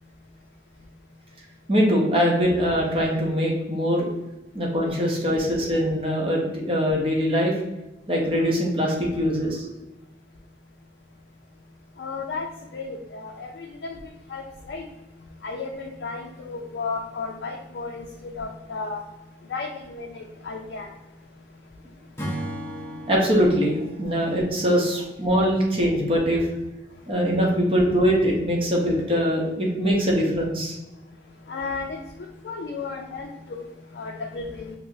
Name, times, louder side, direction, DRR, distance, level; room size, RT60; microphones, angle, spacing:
voice 1, 1.7-4.1 4.5-7.6 8.1-9.7 23.1-26.5 27.1-30.8, equal, 30° right, -2 dB, 0.7 m, -22 dB
voice 2, 12.0-12.5 12.7-14.0 14.3-14.4 14.7-14.9 15.4-19.0 19.5-20.9 31.5-32.0 32.4-33.6 34.0-34.7, left 4 dB, 70° left, 1 dB, 0.4 m, -33 dB
Acoustic guitar / Strum, 22.2-25.6, equal, 15° left, 0.6 m, -37 dB
4.9 x 2.0 x 2.6 m, 1.0 s
head